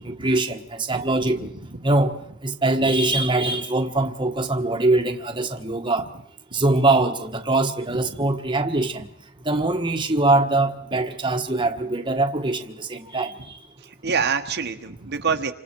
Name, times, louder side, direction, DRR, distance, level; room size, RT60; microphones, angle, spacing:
voice 1, 0.0-1.5 1.8-2.2 2.4-6.0 6.5-9.1 9.4-13.3, right 2 dB, 20° right, 1.4 m, -22 dB
voice 2, 13.8-15.5, right 5 dB, 50° right, 1.2 m, -26 dB
29.0 x 26.0 x 4.6 m
head